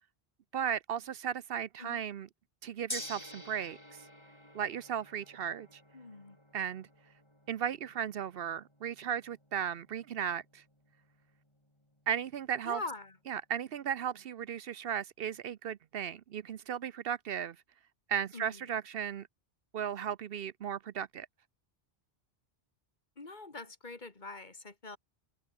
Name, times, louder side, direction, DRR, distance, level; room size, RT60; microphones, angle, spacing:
voice 1, 0.5-2.3 2.6-3.8 4.5-5.8 6.5-6.9 7.5-10.6 12.1-12.8 13.3-17.6 18.1-19.3 19.7-21.3, right 8 dB, 65° right, 0.8 m, -36 dB
Gong, 2.9-13.1, left 1 dB, 25° left, 7.9 m, -50 dB
voice 2, 5.9-6.4 12.6-13.2 18.3-18.7 23.2-25.0, left 3 dB, 45° left, 2.2 m, -44 dB
open air
omnidirectional pair, 1.1 m